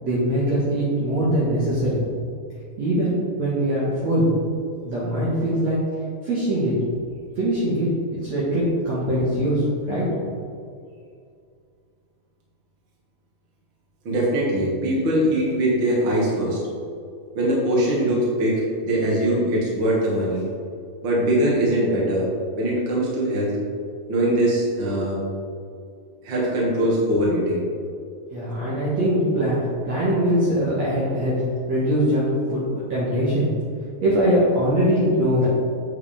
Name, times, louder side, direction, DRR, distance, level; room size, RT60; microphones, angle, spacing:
voice 1, 0.0-2.0 2.8-4.3 4.8-5.8 6.2-6.7 7.4-10.1 28.3-31.4 31.7-32.6 32.9-33.5 34.0-35.5, equal, 55° right, -8 dB, 2.4 m, -22 dB
voice 2, 14.0-16.6 17.3-20.4 21.0-22.3 22.6-23.6 24.1-25.2 26.2-27.6, right 1 dB, 35° right, -5 dB, 2.2 m, -22 dB
9.0 x 8.0 x 3.5 m, 2.3 s
omnidirectional pair, 4.4 m